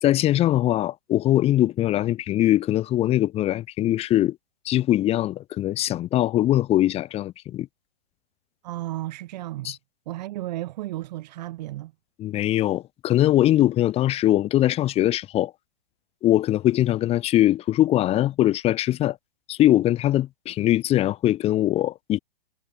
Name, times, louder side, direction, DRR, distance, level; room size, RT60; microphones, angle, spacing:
voice 1, 0.0-4.4 4.6-7.7 9.6-9.8 12.2-15.5 16.2-19.2 19.5-22.2, left 13 dB, 20° left, 1.7 m, -21 dB
voice 2, 8.6-9.8 10.1-11.9, right 16 dB, 45° right, 2.6 m, -33 dB
hypercardioid pair, 135°, 30 cm